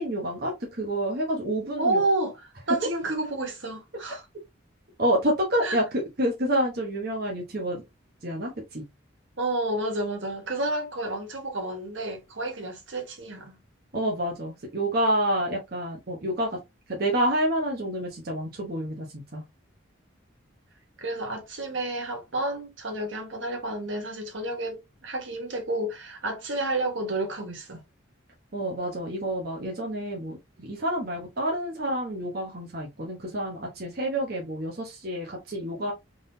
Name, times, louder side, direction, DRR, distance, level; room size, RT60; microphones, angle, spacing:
voice 1, 0.0-2.0 5.0-7.8 8.2-8.8 13.9-16.6 16.9-19.4 28.5-35.9, right 1 dB, 50° right, 1.1 m, -28 dB
voice 2, 1.8-2.3 2.7-4.2 5.6-5.8 9.4-13.6 21.0-27.8, right 2 dB, 70° right, 1.4 m, -30 dB
3.8 x 3.7 x 2.7 m
head